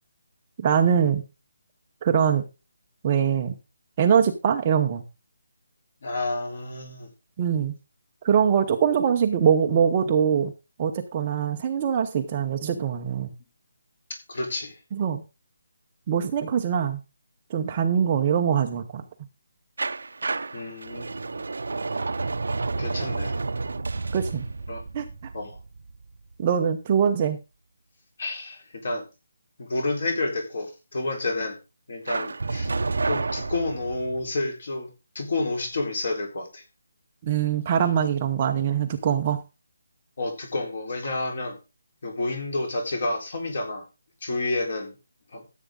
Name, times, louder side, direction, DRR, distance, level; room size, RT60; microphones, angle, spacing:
voice 1, 0.6-1.2 2.0-2.4 3.0-3.5 4.0-5.0 7.4-7.7 8.2-10.5 10.8-13.3 14.9-15.2 16.1-17.0 17.5-19.0 24.1-24.4 24.9-25.1 26.4-27.4 37.2-39.4, right 8 dB, 20° right, 5 dB, 0.8 m, -23 dB
voice 2, 6.0-7.1 14.1-14.8 20.5-21.5 22.6-23.4 24.7-24.8 25.3-25.6 28.2-29.0 29.6-31.6 31.9-32.7 33.1-34.9 35.1-36.6 37.8-37.9 40.2-41.6 42.0-43.9 44.2-45.0 45.3-45.4, left 2 dB, 40° left, 4 dB, 4.0 m, -30 dB
sound 1, 19.8-26.6 32.1-34.3, right 3 dB, 70° right, 0.8 m, -30 dB
14.0 x 8.3 x 3.8 m, 0.28 s
hypercardioid pair, 180°, 0 cm